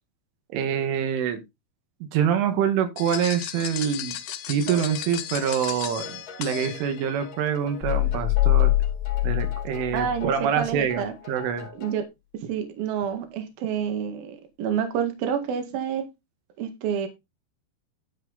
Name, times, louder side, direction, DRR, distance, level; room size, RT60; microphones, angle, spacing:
voice 1, 0.5-1.4 2.0-4.2 4.5-8.7 9.2-11.7, right 8 dB, 85° right, 7 dB, 4.1 m, -26 dB
sound 1, 3.0-7.2, left 12 dB, 80° left, 3.5 m, -35 dB
sound 2, 4.7-12.0, left 5 dB, 35° left, 4.0 m, -42 dB
sound 3, 7.8-10.4 10.7-10.8, left 17 dB, ahead, 3.6 m, -23 dB
voice 2, 9.9-11.1 11.8-12.0 12.3-16.0 16.6-17.1, right 8 dB, 60° right, 6 dB, 3.3 m, -28 dB
12.5 x 5.8 x 4.0 m, 0.23 s
omnidirectional pair, 5.4 m